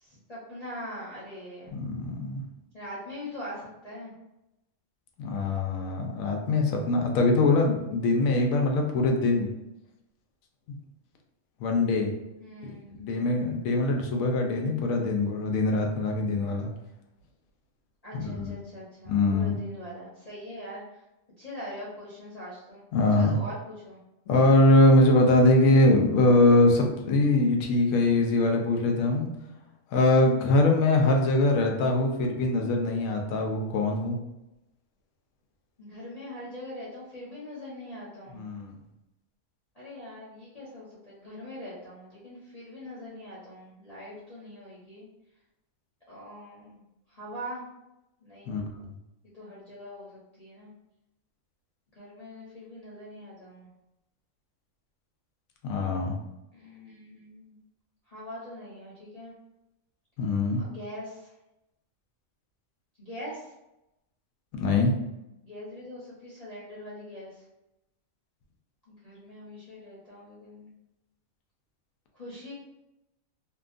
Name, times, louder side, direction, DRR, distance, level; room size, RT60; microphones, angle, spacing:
voice 1, 0.0-1.7 2.7-4.1 12.4-13.4 18.0-20.8 21.4-22.8 23.1-24.0 35.8-38.4 39.7-45.1 46.1-46.8 47.1-47.7 48.2-48.6 49.3-50.7 52.0-53.7 56.5-57.6 58.1-59.3 60.6-61.3 63.0-63.5 65.4-67.3 68.9-70.7 72.1-72.5, left 1 dB, 35° left, -9 dB, 0.8 m, -42 dB
voice 2, 1.7-2.4 5.2-9.5 10.7-10.8 11.6-12.1 13.0-16.7 18.1-18.3 19.1-19.6 22.9-23.4 24.3-29.3 29.9-34.2 38.3-38.7 48.5-48.6 55.6-56.1 60.2-60.6 64.5-64.9, left 2 dB, 90° left, 2 dB, 1.0 m, -22 dB
2.8 x 2.2 x 2.4 m, 0.91 s
omnidirectional pair, 1.4 m